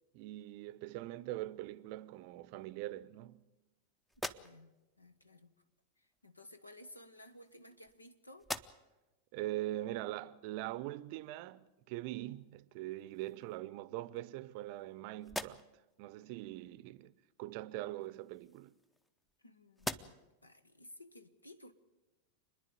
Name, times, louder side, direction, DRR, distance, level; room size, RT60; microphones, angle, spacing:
voice 1, 0.1-3.5 9.3-15.7 16.0-17.1 17.4-18.7, right 16 dB, 45° right, 0.6 m, -42 dB
sound 1, 4.1-4.9 6.0-6.2 7.1-8.0 8.4-9.1 9.6-9.7 12.3-12.5 12.9-13.6 14.2-14.9 15.2-15.9 17.9-19.4 19.7-20.4, left 1 dB, 5° left, 0.7 m, -45 dB
voice 2, 4.2-5.5 6.0-8.5 19.4-20.2 20.4-21.7, left 1 dB, 80° left, 1.1 m, -56 dB
27.0 x 10.5 x 9.5 m
figure-of-eight pair, 90°, 0 cm